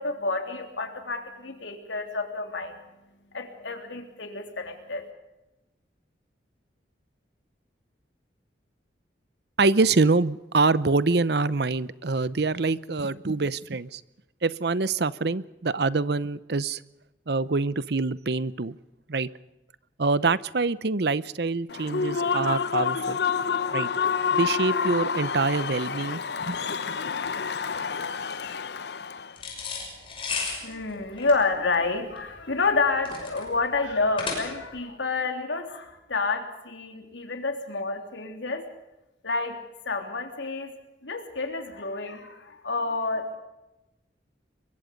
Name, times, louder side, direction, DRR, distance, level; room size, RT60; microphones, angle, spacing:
voice 1, 0.0-2.7 3.3-5.1 30.6-38.6 39.2-39.6 39.8-40.7 41.0-43.4, left 3 dB, 80° left, 5 dB, 3.4 m, -29 dB
voice 2, 9.6-14.0 14.4-16.8 17.3-18.8 19.1-19.3 20.0-23.2 23.7-23.9 24.3-26.6, right 3 dB, 60° right, 18 dB, 0.7 m, -25 dB
Human voice / Cheering / Applause, 21.7-29.3, left 6 dB, 60° left, 0.7 m, -28 dB
sound 1, 29.4-34.8, left 4 dB, 30° left, 6.1 m, -35 dB
23.5 x 23.0 x 5.3 m, 1.0 s
head